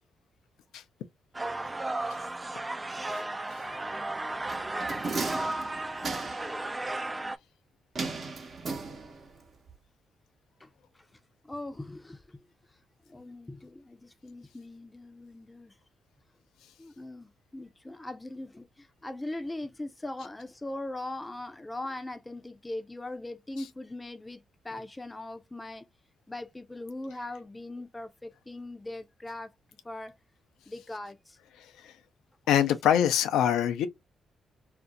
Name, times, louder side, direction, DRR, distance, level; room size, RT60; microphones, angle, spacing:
sound 1, 1.3-7.4, right 2 dB, 25° right, 0.4 m, -34 dB
sound 2, 4.5-6.6 8.0-9.4 9.7-9.8, right 4 dB, 50° right, 0.9 m, -36 dB
voice 1, 11.4-12.2 13.1-15.7 16.8-25.9 26.3-29.5 29.8-30.2 30.7-31.4, left 2 dB, 20° left, 0.6 m, -40 dB
voice 2, 32.5-33.9, left 10 dB, 75° left, 0.5 m, -24 dB
2.5 x 2.0 x 3.9 m
hypercardioid pair, 45°, 0 cm